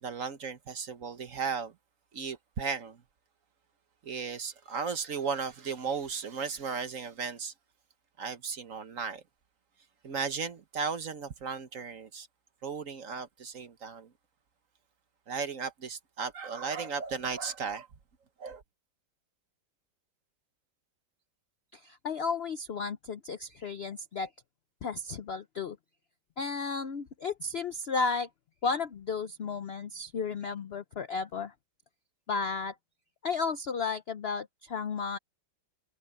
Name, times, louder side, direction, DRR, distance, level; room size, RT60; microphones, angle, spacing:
voice 1, 0.0-1.7 2.1-3.0 4.0-7.5 8.2-9.2 10.0-12.3 12.6-14.1 15.3-17.9 18.4-18.6, right 5 dB, 50° right, 1.4 m, -35 dB
voice 2, 21.7-24.3 24.8-25.8 26.4-28.3 28.6-31.5 32.3-32.7 33.2-35.2, left 4 dB, 70° left, 0.5 m, -33 dB
omnidirectional pair, 2.0 m